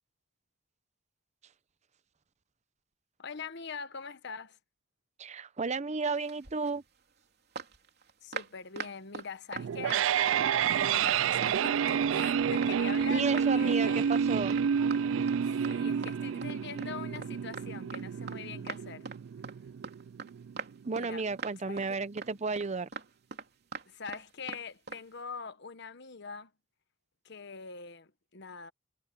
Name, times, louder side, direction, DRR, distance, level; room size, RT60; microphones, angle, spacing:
voice 1, 3.2-4.6 8.2-14.2 15.4-19.1 20.9-21.2 21.6-22.0 23.9-26.5 27.2-28.7, left 5 dB, 60° left, 1.2 m, -43 dB
voice 2, 5.2-6.8 13.1-14.6 20.9-22.9, right 4 dB, 35° right, 0.7 m, -33 dB
sound 1, 6.2-6.8 7.6-10.4 10.7-11.9 12.2-13.1 13.3-13.8 14.1-14.3 14.5-14.7 14.9-15.0 15.3-16.2 16.4-18.4 18.7-19.2 19.4-19.6 19.8-20.3 20.6-21.1 21.4-21.9 22.2-22.3 22.6-24.2 24.5-24.6 24.9-25.0, right 5 dB, 55° right, 3.3 m, -41 dB
sound 2, 9.6-20.6, right 7 dB, 75° right, 0.3 m, -29 dB
head